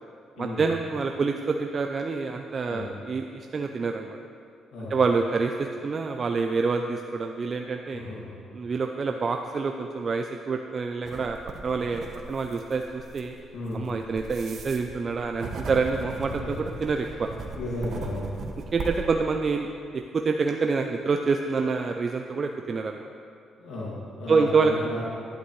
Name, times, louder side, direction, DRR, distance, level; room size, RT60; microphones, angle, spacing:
voice 1, 0.4-4.2 4.9-8.0 8.5-11.4 11.6-13.3 13.7-17.3 18.7-19.7 19.9-23.1 24.3-24.7, right 4 dB, 40° right, 4 dB, 0.5 m, -27 dB
voice 2, 7.9-8.3 13.5-13.9 16.4-16.5 17.1-17.2 17.6-18.3 23.6-25.0, left 2 dB, 85° left, -7 dB, 2.2 m, -34 dB
sound 1, 11.0-19.1, right 3 dB, 60° right, 1.1 m, -38 dB
11.5 x 11.0 x 3.2 m, 2.5 s
cardioid pair, 90°, 0 cm